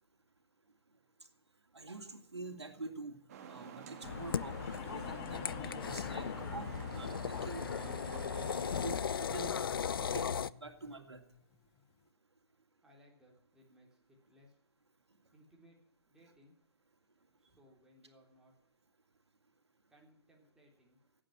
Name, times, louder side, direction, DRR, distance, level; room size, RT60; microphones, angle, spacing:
voice 1, 1.7-3.2 3.5-9.6 10.1-11.2, right 3 dB, 80° right, 5 dB, 2.6 m, -47 dB
sound 1, 3.3-9.0, right 7 dB, 35° right, 1.7 m, -49 dB
sound 2, 3.7-11.8, left 11 dB, 20° left, 0.8 m, -52 dB
sound 3, 4.0-10.5, left 7 dB, 55° left, 0.5 m, -37 dB
voice 2, 12.8-14.6 15.3-15.8 16.1-16.6 17.4-18.6 19.9-21.0, equal, 5° right, -3 dB, 3.5 m, -64 dB
17.0 x 8.8 x 8.7 m, 0.75 s
figure-of-eight pair, 140°, 14 cm